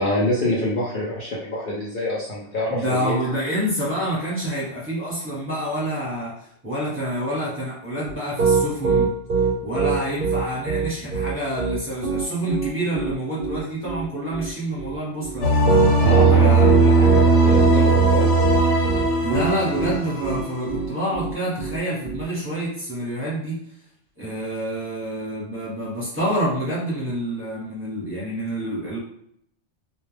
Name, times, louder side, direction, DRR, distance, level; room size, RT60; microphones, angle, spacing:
voice 1, 0.0-3.2 16.0-18.3, left 1 dB, 55° left, -6 dB, 0.7 m, -26 dB
voice 2, 2.7-6.3 6.6-9.1 9.6-15.5 16.4-16.7 19.2-23.6 24.2-29.0, right 1 dB, 10° right, -8 dB, 0.9 m, -27 dB
Piano, 8.0-22.3, right 5 dB, 60° right, 0.6 m, -23 dB
sound 1, 15.4-20.8, right 3 dB, 90° left, 1.1 m, -18 dB
2.3 x 2.2 x 3.2 m, 0.70 s
omnidirectional pair, 1.2 m